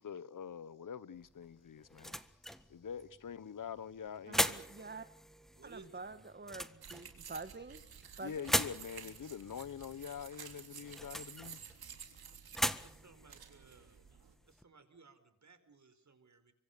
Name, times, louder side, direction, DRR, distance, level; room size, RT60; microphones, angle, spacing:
voice 1, 0.0-2.2 2.7-4.6 8.2-11.6, left 7 dB, 60° left, 1.1 m, -45 dB
sound 1, 1.1-14.6, equal, ahead, 1.7 m, -41 dB
voice 2, 4.3-5.1 5.6-7.8 8.2-8.5, right 3 dB, 30° right, 1.6 m, -47 dB
voice 3, 5.5-5.9 12.8-14.1 14.4-16.5, right 4 dB, 50° right, 4.7 m, -60 dB
sound 2, 6.8-14.3, right 7 dB, 80° right, 3.5 m, -53 dB
25.0 x 24.5 x 6.9 m
cardioid pair, 45°, 36 cm